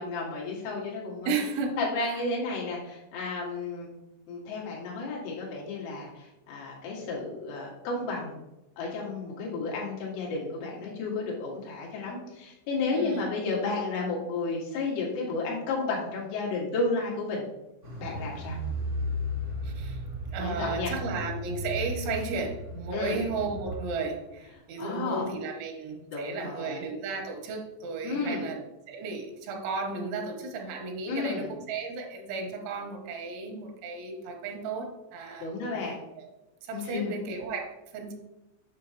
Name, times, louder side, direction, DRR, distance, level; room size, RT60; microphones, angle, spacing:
voice 1, 0.0-1.4 1.8-3.9 4.3-8.4 8.8-17.5 18.0-18.6 20.4-20.9 22.9-23.2 24.8-25.3 26.1-26.8 28.0-28.5 31.1-31.5 35.4-36.0 36.7-37.2, left 3 dB, 85° left, -3 dB, 4.3 m, -32 dB
voice 2, 1.2-2.2 12.9-13.3 19.6-20.0 20.3-28.6 28.9-36.3 36.6-38.1, right 4 dB, 85° right, 2 dB, 3.4 m, -34 dB
Car, 17.8-24.0 24.3-24.4, equal, 45° right, 0.8 m, -35 dB
8.8 x 6.1 x 2.9 m, 0.96 s
omnidirectional pair, 5.4 m